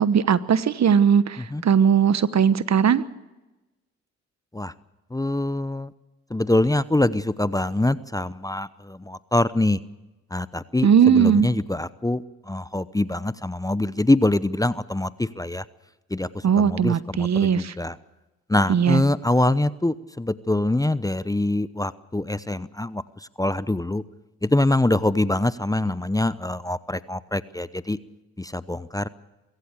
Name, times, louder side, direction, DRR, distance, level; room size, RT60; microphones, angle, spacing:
voice 1, 0.0-3.0 10.8-11.5 16.4-17.7 18.7-19.0, right 7 dB, 50° right, 16 dB, 1.2 m, -19 dB
voice 2, 5.1-5.9 6.3-9.8 10.3-12.2 12.5-15.6 16.1-16.3 16.6-17.9 18.5-23.0 23.4-24.0 24.4-28.0 28.4-29.1, left 2 dB, 10° left, 16 dB, 0.8 m, -24 dB
23.5 x 16.0 x 8.2 m, 1.1 s
supercardioid pair, 50°, 35 cm